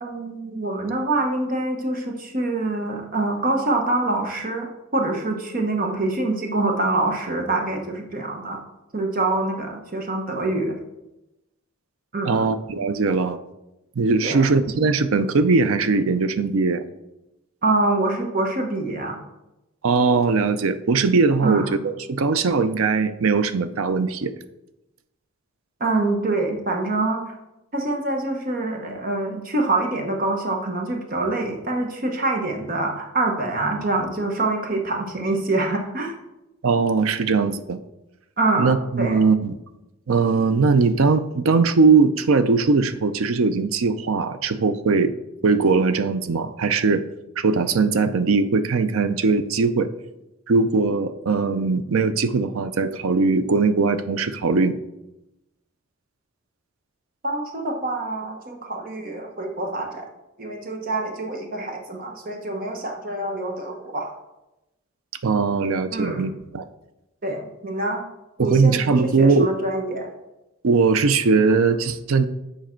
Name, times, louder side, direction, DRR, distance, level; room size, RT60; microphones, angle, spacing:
voice 1, 0.0-8.6 8.9-10.8 12.1-12.4 14.2-14.5 17.6-19.2 21.4-21.8 25.8-27.4 27.7-36.1 38.4-39.2 57.2-60.1 60.4-64.1 65.9-66.3 67.2-68.0 68.4-70.1, right 2 dB, 40° right, 2 dB, 1.0 m, -25 dB
voice 2, 12.3-13.4 14.0-16.8 19.8-24.3 36.6-37.8 38.6-39.6 40.1-45.1 45.4-47.0 47.4-49.9 50.5-54.7 65.2-66.6 68.4-69.5 70.6-72.3, right 4 dB, 80° right, 11 dB, 0.5 m, -20 dB
7.3 x 5.1 x 4.4 m, 0.94 s
head